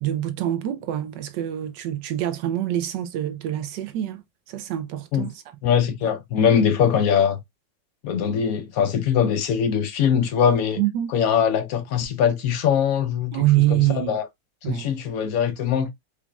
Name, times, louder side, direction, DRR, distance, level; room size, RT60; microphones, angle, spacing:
voice 1, 0.0-4.2 4.5-5.4 10.8-11.1 13.3-14.2 14.6-14.9, right 13 dB, 75° right, 1.1 m, -25 dB
voice 2, 5.6-7.4 8.0-10.8 11.1-13.4 13.7-14.2 14.6-15.9, left 8 dB, 70° left, 0.9 m, -22 dB
5.0 x 2.4 x 2.2 m
omnidirectional pair, 2.0 m